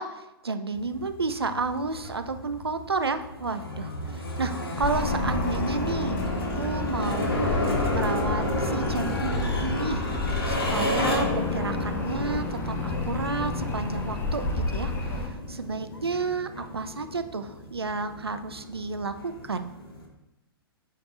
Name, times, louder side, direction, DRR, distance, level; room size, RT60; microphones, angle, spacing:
voice 1, 0.0-4.5 4.8-6.3 6.5-10.1 10.5-15.1 15.5-19.7, right 3 dB, 80° right, 8 dB, 0.5 m, -31 dB
sound 1, 0.7-20.1, left 1 dB, 65° left, 1.4 m, -32 dB
Bark, 1.9-2.5 5.0-6.1 7.4-8.3 9.0-10.1 10.8-12.6 12.8-15.3 15.9-16.9, equal, 85° left, 1.3 m, -45 dB
sound 2, 4.8-15.3, left 3 dB, 15° left, 0.8 m, -31 dB
8.8 x 4.3 x 3.1 m, 0.93 s
figure-of-eight pair, 105°, 13 cm